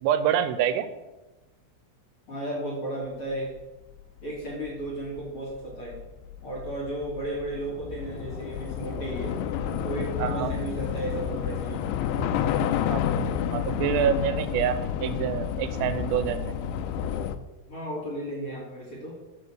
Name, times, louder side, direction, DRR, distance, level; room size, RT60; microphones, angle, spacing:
voice 1, 0.0-0.9 10.2-10.5 12.9-13.0 13.5-16.5, right 10 dB, 85° right, 11 dB, 3.3 m, -26 dB
voice 2, 2.3-3.5 4.2-6.0 6.4-9.4 9.6-12.0 17.7-19.2, right 1 dB, 30° left, -4 dB, 3.0 m, -34 dB
Train / Subway metro underground, 4.0-4.1 4.4-17.4, left 8 dB, 85° left, 2.8 m, -30 dB
12.5 x 6.1 x 7.6 m, 1.1 s
omnidirectional pair, 5.9 m